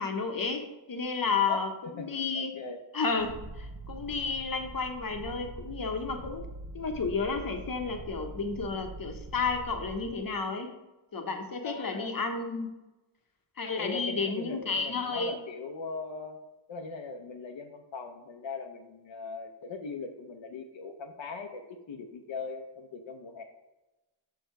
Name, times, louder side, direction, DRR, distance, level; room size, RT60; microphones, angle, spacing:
voice 1, 0.0-2.6 2.9-6.4 6.7-10.7 11.1-12.7 13.6-15.4, left 4 dB, 50° left, 5 dB, 0.9 m, -32 dB
voice 2, 2.0-2.8 11.6-12.1 13.8-16.4 16.7-23.4, left 4 dB, 75° left, 4 dB, 0.7 m, -40 dB
Purr, 3.2-10.2, right 2 dB, 65° right, 1.0 m, -44 dB
6.4 x 4.7 x 4.5 m, 1.1 s
wide cardioid pair, 105°, 45 cm